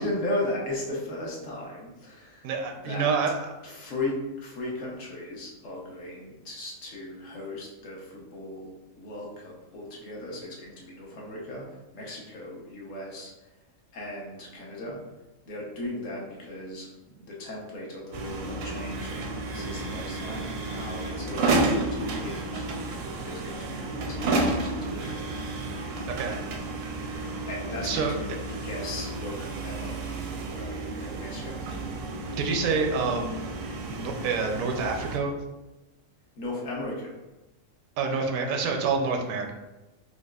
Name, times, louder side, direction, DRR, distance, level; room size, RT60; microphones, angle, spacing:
voice 1, 0.0-2.5 2.8-3.1 3.6-8.7 9.0-13.5 13.9-15.0 15.5-19.1 19.5-22.7 23.2-25.3 27.5-30.0 30.5-31.6 36.4-37.2, left 1 dB, 70° left, -3 dB, 1.2 m, -36 dB
voice 2, 2.4-3.3 26.1-26.4 27.8-28.1 32.4-33.4 33.9-35.4 38.0-39.5, right 4 dB, 85° right, 3 dB, 1.0 m, -27 dB
sound 1, 18.1-35.2, right 2 dB, 65° right, 0.6 m, -31 dB
4.7 x 2.4 x 2.3 m, 1.0 s
omnidirectional pair, 1.4 m